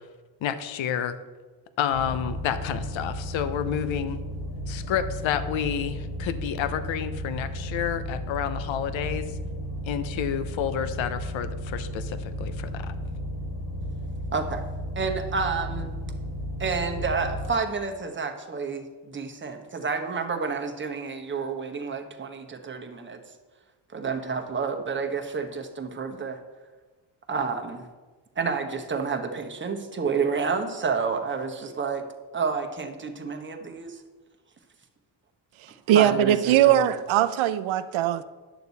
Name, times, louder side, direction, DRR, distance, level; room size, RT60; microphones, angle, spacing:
voice 1, 0.4-1.2 1.8-4.2 4.7-9.3 9.8-12.9, left 9 dB, 70° left, 0.8 m, -29 dB
sound 1, 1.9-17.5, equal, 50° left, 2.2 m, -34 dB
voice 2, 15.0-15.9 16.6-23.2 23.9-26.4 27.3-27.9 28.4-32.0 32.3-34.0 35.9-36.9, right 5 dB, 25° right, 1.1 m, -29 dB
voice 3, 35.9-38.2, right 11 dB, 70° right, 0.7 m, -20 dB
10.5 x 6.7 x 4.1 m
cardioid pair, 95°, 49 cm